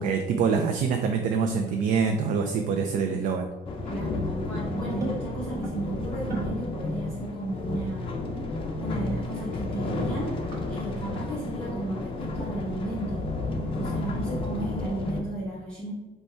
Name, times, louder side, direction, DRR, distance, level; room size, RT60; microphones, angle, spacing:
voice 1, 0.0-3.5, right 5 dB, 55° right, 4 dB, 0.4 m, -25 dB
sound 1, 0.9-5.7 6.2-6.6 6.9-7.2 7.5-7.6 8.6-9.8 10.1-10.9, right 2 dB, 20° right, 1.0 m, -42 dB
sound 2, 3.7-15.2, left 2 dB, 35° left, 0.5 m, -32 dB
voice 2, 3.8-8.3 8.8-10.4 10.7-13.3 13.7-15.9, right 1 dB, 5° left, -10 dB, 0.9 m, -34 dB
5.3 x 2.2 x 4.4 m, 1.3 s
cardioid pair, 175°, 16 cm